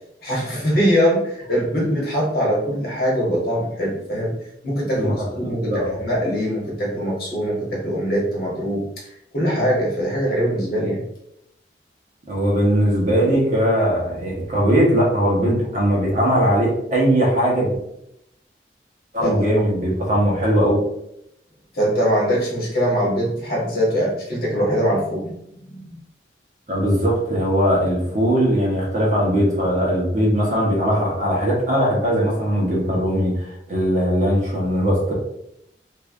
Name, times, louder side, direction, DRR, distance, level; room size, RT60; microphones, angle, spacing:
voice 1, 0.2-4.3 4.6-8.8 9.3-11.0 19.2-19.3 21.7-26.0, equal, 55° left, -3 dB, 1.3 m, -22 dB
voice 2, 5.4-6.0 12.3-17.8 19.1-20.8 26.7-35.1, equal, 45° right, -4 dB, 1.1 m, -20 dB
3.4 x 3.2 x 2.5 m, 0.79 s
head